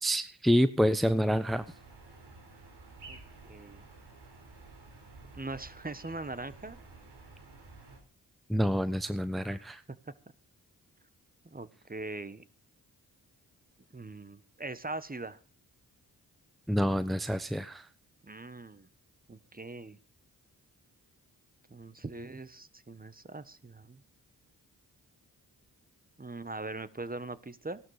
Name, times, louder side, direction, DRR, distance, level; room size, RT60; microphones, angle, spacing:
voice 1, 0.0-1.6 8.5-9.8 16.7-17.9, equal, ahead, 12 dB, 0.9 m, -27 dB
sound 1, 1.4-8.0, right 3 dB, 75° right, 4.5 m, -52 dB
voice 2, 3.4-3.8 5.3-6.8 9.5-9.6 11.4-12.4 13.9-15.4 18.2-18.9 19.3-20.0 21.7-24.0 26.2-27.8, right 2 dB, 20° right, 14 dB, 1.3 m, -41 dB
16.0 x 12.0 x 5.0 m, 0.37 s
supercardioid pair, 40°, 40 cm